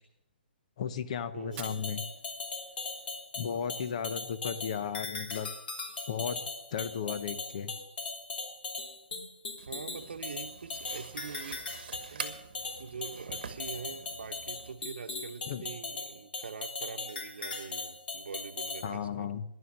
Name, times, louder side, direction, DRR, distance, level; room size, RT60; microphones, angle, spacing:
voice 1, 0.8-2.0 3.4-5.5 6.1-7.7 15.5-15.7 18.8-19.4, left 7 dB, 40° left, 0.8 m, -35 dB
voice 2, 1.3-1.8 9.7-11.6 12.1-12.4 12.8-19.3, right 5 dB, 80° right, 0.9 m, -44 dB
Fire, 1.4-3.4, right 9 dB, 15° right, 0.8 m, -51 dB
sound 1, 1.5-18.9, left 3 dB, 65° left, 3.1 m, -39 dB
sound 2, 9.6-14.7, right 6 dB, 60° right, 1.3 m, -46 dB
11.5 x 11.0 x 6.5 m
hypercardioid pair, 170°, 6 cm